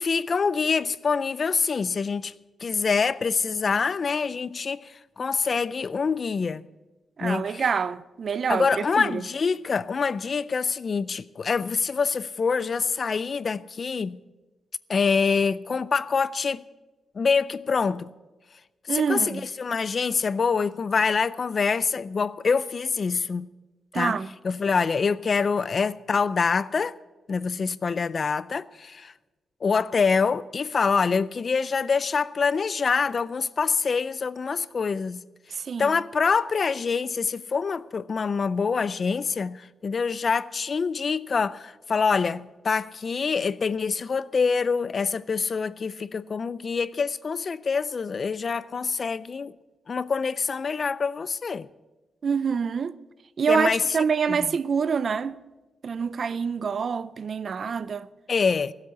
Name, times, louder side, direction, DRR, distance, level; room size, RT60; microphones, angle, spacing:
voice 1, 0.0-2.3 2.6-6.6 7.2-7.6 8.5-14.2 14.9-16.6 17.2-18.1 18.9-23.5 23.9-24.2 24.4-26.9 27.3-29.1 29.6-35.2 35.8-49.5 49.9-51.7 53.5-53.8 54.3-54.5 58.3-58.7, left 5 dB, 35° left, 0.3 m, -25 dB
voice 2, 7.2-9.2 18.9-19.4 23.9-24.3 35.5-35.9 52.2-52.9 53.4-55.4 55.8-58.1, right 6 dB, 45° right, 0.4 m, -26 dB
15.5 x 8.2 x 8.0 m
wide cardioid pair, 165°, 0 cm